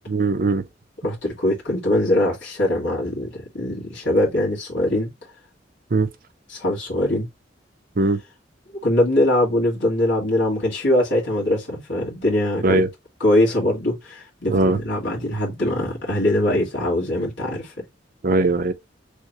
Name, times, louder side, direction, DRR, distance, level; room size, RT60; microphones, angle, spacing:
voice 1, 0.1-0.6 5.9-6.1 8.0-8.2 12.6-12.9 14.5-14.8 18.2-18.7, right 2 dB, 50° right, 0.6 m, -19 dB
voice 2, 1.0-5.1 6.5-7.3 8.8-12.8 13.2-17.7, left 1 dB, 75° left, 2.1 m, -22 dB
6.4 x 2.1 x 3.1 m
head